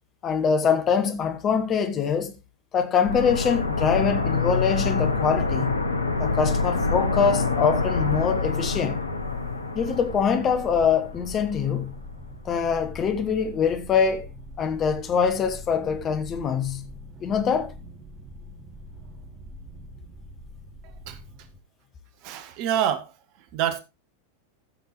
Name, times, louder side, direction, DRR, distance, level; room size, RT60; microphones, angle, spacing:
voice 1, 0.2-2.3 2.7-5.8 6.2-9.1 9.7-12.0 12.4-14.3 14.6-16.9 17.2-17.7, left 6 dB, 30° left, 1.4 m, -24 dB
sound 1, 3.1-11.8 12.0-12.1, left 3 dB, 80° left, 0.9 m, -26 dB
sound 2, 4.4-21.6, equal, 30° right, 2.4 m, -43 dB
voice 2, 22.2-23.1 23.5-23.8, right 10 dB, 45° right, 1.1 m, -26 dB
14.0 x 7.1 x 3.2 m
figure-of-eight pair, 90°, 0 cm